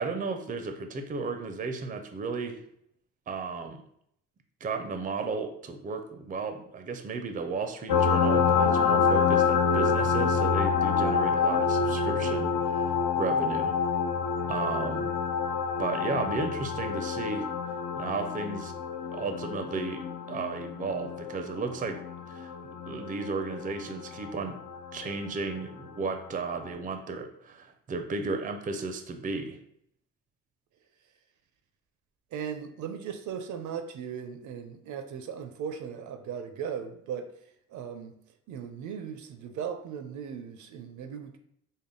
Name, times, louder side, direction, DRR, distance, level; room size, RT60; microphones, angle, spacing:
voice 1, 0.0-2.6 3.3-3.8 4.6-13.7 14.5-15.1 15.8-17.5 18.0-18.7 19.1-22.0 22.3-22.5 22.9-24.6 24.9-29.6, right 4 dB, 25° right, 7 dB, 0.4 m, -34 dB
sound 1, 7.9-25.1 26.7-26.8, left 5 dB, 65° left, 0.6 m, -27 dB
voice 2, 32.3-37.3 37.7-38.2 38.5-41.4, right 7 dB, 75° right, 7 dB, 0.5 m, -37 dB
3.5 x 2.1 x 3.7 m, 0.70 s
cardioid pair, 90°, 30 cm